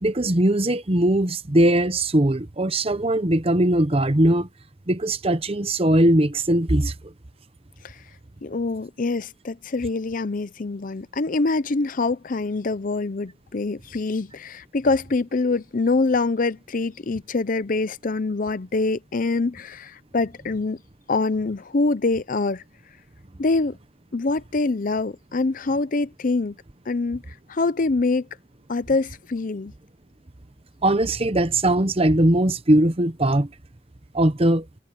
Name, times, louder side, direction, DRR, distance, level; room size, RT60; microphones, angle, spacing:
voice 1, 0.0-4.5 4.9-7.1 30.8-33.5 34.1-34.6, right 1 dB, 30° right, 1.0 m, -20 dB
voice 2, 8.4-20.8 21.1-22.6 23.4-23.8 24.1-26.5 26.9-28.3 28.7-29.7, left 3 dB, 40° left, 0.5 m, -25 dB
head